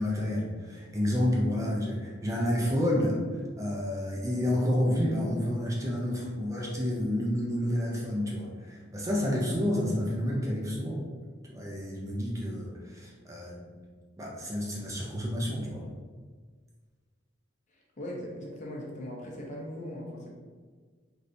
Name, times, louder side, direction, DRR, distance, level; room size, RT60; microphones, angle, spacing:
voice 1, 0.0-11.0 11.5-13.7 14.2-15.9, left 1 dB, 15° right, -3 dB, 0.4 m, -30 dB
voice 2, 17.7-20.3, left 1 dB, 40° left, -2 dB, 0.6 m, -39 dB
3.2 x 2.7 x 2.6 m, 1.5 s
head